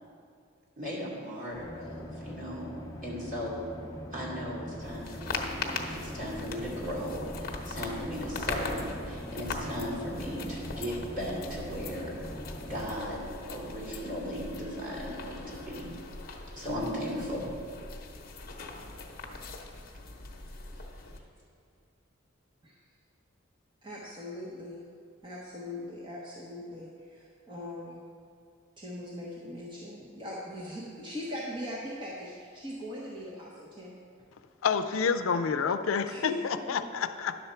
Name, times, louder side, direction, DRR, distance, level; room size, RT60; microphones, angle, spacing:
voice 1, 0.8-2.8 3.0-3.6 4.1-12.2 12.7-13.2 13.5-15.9 16.5-17.5 20.1-20.3, equal, 40° right, -5 dB, 2.6 m, -37 dB
sound 1, 1.5-13.0, equal, 15° left, 0.6 m, -43 dB
sound 2, 4.8-21.2, left 3 dB, 45° left, 0.9 m, -40 dB
voice 2, 23.8-24.8 25.2-28.0 28.8-34.0 36.1-37.0, left 1 dB, 25° right, -6 dB, 0.9 m, -40 dB
voice 3, 34.6-37.4, left 6 dB, 80° left, 10 dB, 0.4 m, -29 dB
10.5 x 6.9 x 4.4 m, 2.3 s
head